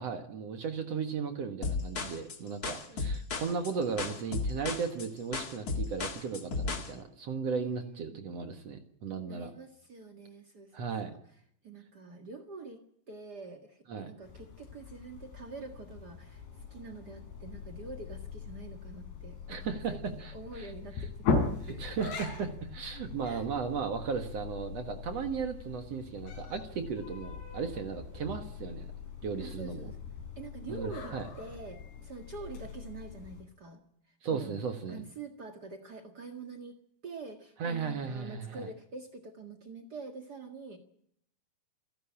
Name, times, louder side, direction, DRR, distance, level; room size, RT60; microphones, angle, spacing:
voice 1, 0.0-9.5 10.7-11.1 13.9-14.1 19.5-20.7 21.6-28.9 29.2-29.9 30.7-31.3 34.2-35.0 37.6-38.7, right 5 dB, 60° right, 7 dB, 1.8 m, -36 dB
sound 1, 1.6-6.9, left 4 dB, 60° left, 0.9 m, -34 dB
voice 2, 7.5-8.2 9.3-11.2 11.6-12.8 13.1-21.3 21.7-21.9 23.2-23.5 29.4-30.0 30.3-33.8 34.3-34.5 34.9-40.8, right 3 dB, 85° right, 5 dB, 0.9 m, -46 dB
sound 2, 14.2-33.4, left 4 dB, 85° left, 7.0 m, -40 dB
28.5 x 12.0 x 8.7 m, 0.71 s
omnidirectional pair, 4.9 m